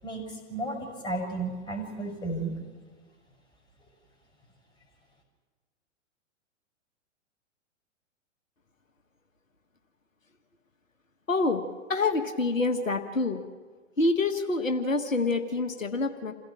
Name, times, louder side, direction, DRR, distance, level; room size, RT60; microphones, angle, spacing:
voice 1, 0.0-2.6, right 2 dB, 10° left, 1 dB, 6.7 m, -33 dB
voice 2, 11.3-11.6 11.9-13.4 14.0-16.3, left 3 dB, 85° left, 6 dB, 1.7 m, -26 dB
28.0 x 16.5 x 7.5 m, 1.5 s
figure-of-eight pair, 105°, 38 cm